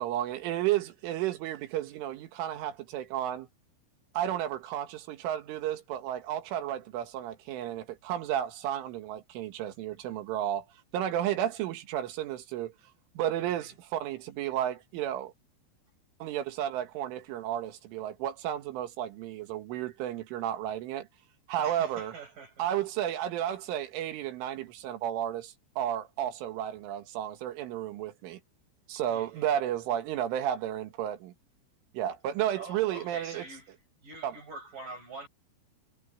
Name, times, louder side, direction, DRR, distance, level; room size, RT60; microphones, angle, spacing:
voice 1, 0.0-3.5 4.1-10.7 10.9-12.7 13.2-15.3 16.2-21.1 21.5-22.1 22.6-28.4 28.9-31.3 31.9-33.5 34.2-34.4, right 11 dB, 85° right, 4.2 m, -32 dB
voice 2, 13.4-13.7 21.6-22.7 23.1-23.2 29.1-29.5 32.6-33.7 34.0-35.3, right 3 dB, 45° right, 8.3 m, -45 dB
omnidirectional pair, 5.6 m